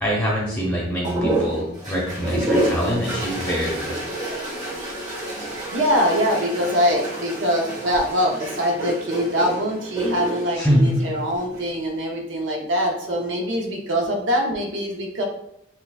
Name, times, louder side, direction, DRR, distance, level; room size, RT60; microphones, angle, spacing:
voice 1, 0.0-4.0 10.6-10.8, equal, 5° left, -4 dB, 0.7 m, -24 dB
sound 1, 1.0-11.7 12.9-13.5, right 1 dB, 40° right, 1.3 m, -29 dB
voice 2, 5.7-15.2, equal, 80° right, 1 dB, 0.8 m, -23 dB
5.9 x 2.2 x 2.3 m, 0.77 s
head